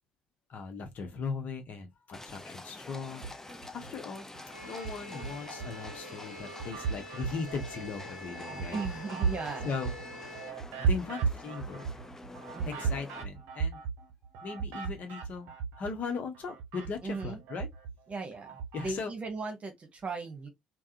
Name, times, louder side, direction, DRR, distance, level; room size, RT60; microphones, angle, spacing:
voice 1, 0.5-3.3 3.7-4.3 4.6-8.8 9.6-9.9 10.8-12.0 12.7-13.8 14.4-17.7 18.7-19.1, left 5 dB, 45° left, 0.9 m, -38 dB
Livestock farm animals working animals, 2.1-13.2, left 2 dB, 10° left, 0.6 m, -47 dB
sound 1, 3.1-3.9 4.3-5.9 6.3-16.1 16.3-18.9, right 6 dB, 60° right, 0.7 m, -36 dB
sound 2, 4.5-10.5, left 1 dB, 85° left, 0.9 m, -46 dB
voice 2, 8.7-9.7 12.5-12.9 17.0-17.4 18.1-20.5, right 3 dB, 35° right, 1.1 m, -38 dB
3.5 x 2.2 x 2.7 m
figure-of-eight pair, 50°, 4 cm